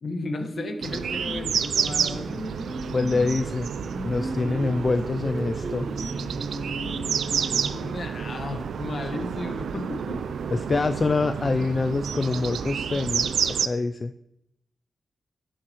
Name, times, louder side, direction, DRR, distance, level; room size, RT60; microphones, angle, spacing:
voice 1, 0.0-2.5 7.6-10.4, left 2 dB, 65° left, 5 dB, 1.3 m, -34 dB
Singing, 0.5-7.8, equal, 20° right, 3.3 m, -37 dB
sound 1, 0.8-13.7, right 7 dB, 90° right, 0.4 m, -29 dB
voice 2, 2.9-3.7 4.0-5.9 9.0-9.1 10.5-13.3 13.6-14.1, left 3 dB, 45° left, 9 dB, 0.4 m, -25 dB
11.5 x 7.5 x 3.0 m, 0.81 s
cardioid pair, 65°, 0 cm